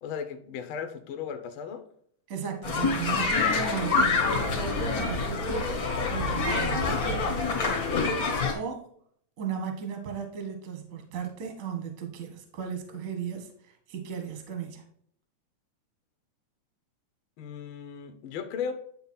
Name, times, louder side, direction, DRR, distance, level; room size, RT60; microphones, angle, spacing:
voice 1, 0.0-1.8 17.4-18.7, left 7 dB, 70° left, 7 dB, 1.2 m, -36 dB
voice 2, 2.3-7.3 8.2-8.9 9.4-14.9, right 6 dB, 45° right, 4 dB, 1.1 m, -36 dB
sound 1, 2.6-8.5, left 4 dB, 45° left, 1.2 m, -26 dB
9.2 x 3.9 x 4.3 m, 0.64 s
omnidirectional pair, 3.5 m